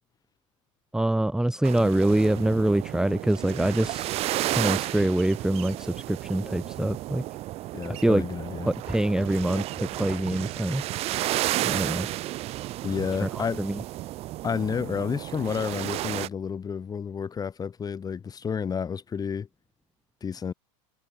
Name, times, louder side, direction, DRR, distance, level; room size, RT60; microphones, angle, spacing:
voice 1, 0.9-4.1 4.5-7.2 7.8-8.2 8.7-10.8 11.6-12.1 13.2-13.8, right 1 dB, 5° right, 1.5 m, -25 dB
sound 1, 1.6-16.3, right 16 dB, 40° right, 0.5 m, -32 dB
voice 2, 7.7-8.7 12.8-13.7 14.4-19.5 20.2-20.5, left 6 dB, 20° left, 3.7 m, -30 dB
hypercardioid pair, 110°, 17 cm